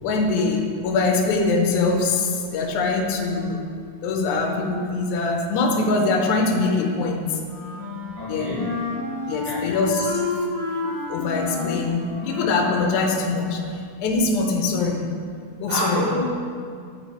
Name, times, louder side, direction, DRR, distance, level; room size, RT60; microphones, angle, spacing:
voice 1, 0.0-3.6 4.0-7.4 8.3-8.7 9.3-10.5 11.1-15.1 15.6-16.1, left 3 dB, 75° left, 2 dB, 1.8 m, -23 dB
Wind instrument woodwind instrument, 7.4-13.1, left 3 dB, 60° left, 2.5 m, -30 dB
voice 2, 8.2-8.6 9.4-9.7 15.7-16.2, right 1 dB, 80° right, -9 dB, 3.9 m, -28 dB
8.5 x 4.3 x 4.6 m, 2.2 s
omnidirectional pair, 4.0 m